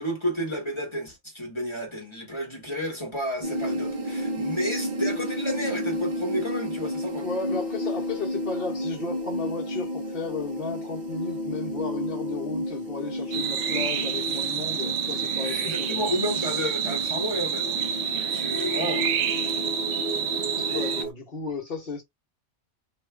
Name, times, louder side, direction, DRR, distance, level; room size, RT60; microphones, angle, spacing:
voice 1, 0.0-7.2 15.4-17.8 18.1-19.1, equal, 20° left, 1.2 m, -31 dB
sound 1, 3.4-21.1, left 1 dB, 40° right, 0.9 m, -32 dB
voice 2, 7.2-16.1 20.6-22.0, left 4 dB, 45° left, 1.1 m, -34 dB
sound 2, 13.3-21.0, right 8 dB, 70° right, 0.8 m, -28 dB
2.9 x 2.4 x 3.2 m
omnidirectional pair, 1.4 m